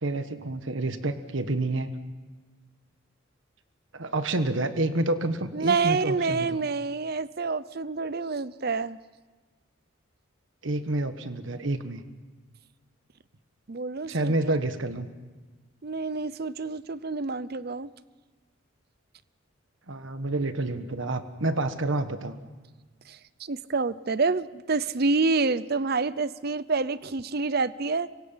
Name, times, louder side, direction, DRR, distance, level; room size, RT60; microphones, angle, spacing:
voice 1, 0.0-2.0 3.9-6.6 10.6-12.0 14.1-15.1 19.9-22.4, right 2 dB, 70° right, 10 dB, 1.4 m, -28 dB
voice 2, 5.5-9.0 13.7-14.5 15.8-17.9 23.1-28.1, right 4 dB, 50° right, 17 dB, 0.7 m, -28 dB
26.5 x 24.0 x 5.8 m, 1.3 s
head